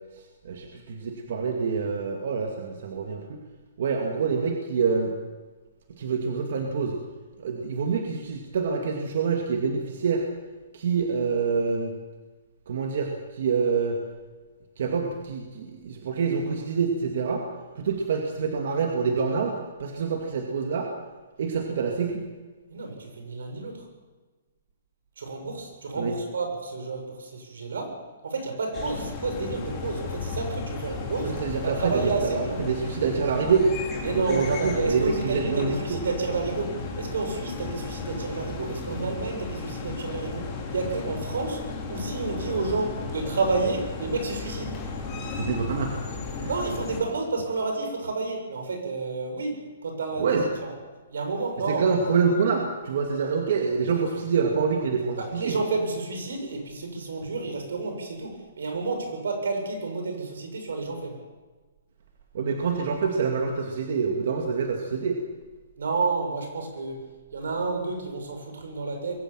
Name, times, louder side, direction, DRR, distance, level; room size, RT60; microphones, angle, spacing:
voice 1, 0.1-3.4 3.8-5.1 6.0-7.0 7.4-10.3 10.7-11.9 12.7-14.0 14.8-17.4 17.8-20.9 21.4-22.3 25.9-26.2 31.2-33.7 34.1-36.0 45.2-45.9 46.4-46.5 50.2-50.4 51.7-55.6 62.3-65.2, right 5 dB, 50° right, 2 dB, 2.2 m, -26 dB
voice 2, 22.7-23.9 25.2-28.0 28.2-31.3 31.6-32.6 34.0-41.6 41.9-44.7 46.5-50.3 50.6-50.7 51.1-51.9 55.2-61.2 65.8-67.0 67.3-69.2, right 3 dB, 85° right, 4 dB, 7.2 m, -30 dB
sound 1, 28.7-47.0, left 4 dB, 15° left, 3.2 m, -35 dB
22.0 x 17.0 x 7.5 m, 1.3 s
hypercardioid pair, 180°, 0 cm